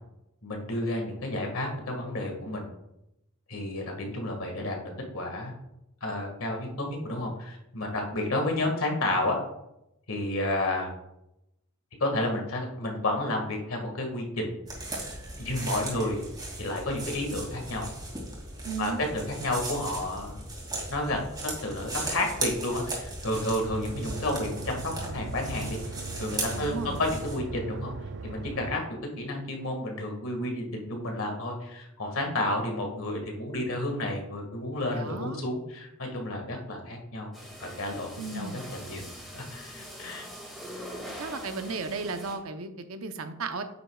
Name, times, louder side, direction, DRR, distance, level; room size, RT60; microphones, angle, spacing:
voice 1, 0.4-2.6 3.5-5.5 6.0-9.4 10.1-10.9 12.0-14.5 15.4-16.2 16.6-17.9 18.8-20.4 20.9-27.9 28.2-37.3 37.6-39.1 39.3-40.3, left 1 dB, 75° left, 2 dB, 1.9 m, -31 dB
sound 1, 14.7-27.4, right 2 dB, 20° right, 2.5 m, -37 dB
voice 2, 18.6-19.0 26.5-27.0 34.9-35.4 38.2-38.6 41.2-43.6, right 4 dB, 75° right, 7 dB, 0.8 m, -35 dB
sound 2, 23.7-28.8, right 3 dB, 55° right, 0.5 m, -39 dB
sound 3, 37.3-42.3, equal, ahead, 2.2 m, -43 dB
9.2 x 7.9 x 2.3 m, 0.87 s
head